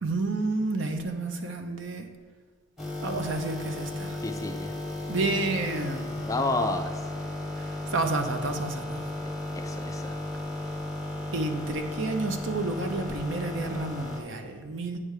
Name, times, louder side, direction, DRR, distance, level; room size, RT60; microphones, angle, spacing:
voice 1, 0.0-2.1 3.0-4.2 5.1-6.2 7.6-9.0 11.3-15.0, right 2 dB, 70° right, 6 dB, 0.7 m, -30 dB
sound 1, 2.8-14.2, left 1 dB, ahead, 1.1 m, -34 dB
voice 2, 4.2-4.8 6.3-7.1 9.2-10.2, left 2 dB, 15° left, 5 dB, 0.4 m, -31 dB
8.6 x 3.4 x 6.5 m, 1.5 s
head